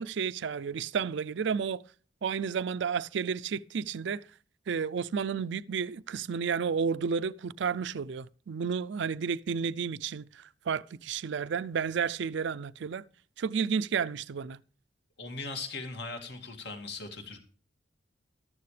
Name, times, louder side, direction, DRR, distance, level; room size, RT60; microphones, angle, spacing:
voice 1, 0.0-1.8 2.2-4.2 4.7-13.0 13.4-14.6, right 6 dB, 70° right, 0.4 m, -31 dB
voice 2, 15.2-17.4, left 3 dB, 65° left, 2.3 m, -39 dB
13.5 x 12.5 x 3.3 m
head